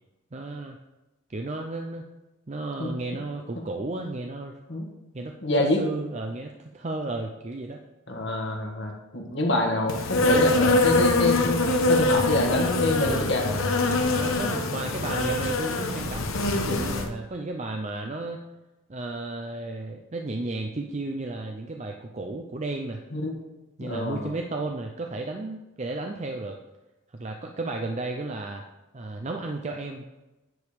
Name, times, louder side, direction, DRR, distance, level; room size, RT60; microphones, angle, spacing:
voice 1, 0.3-0.8 1.3-2.0 2.5-4.5 5.1-5.3 5.8-7.8 14.0-16.2 16.6-18.4 18.9-23.0 23.8-26.6 27.1-28.6 28.9-30.0, right 2 dB, 30° right, 3 dB, 0.5 m, -33 dB
voice 2, 5.4-5.8 8.1-13.5 23.1-23.3 23.8-24.3, left 1 dB, 55° left, 1 dB, 1.6 m, -26 dB
Insect, 9.9-17.1, left 2 dB, 75° left, 1.0 m, -24 dB
9.6 x 5.2 x 5.0 m, 1.0 s
head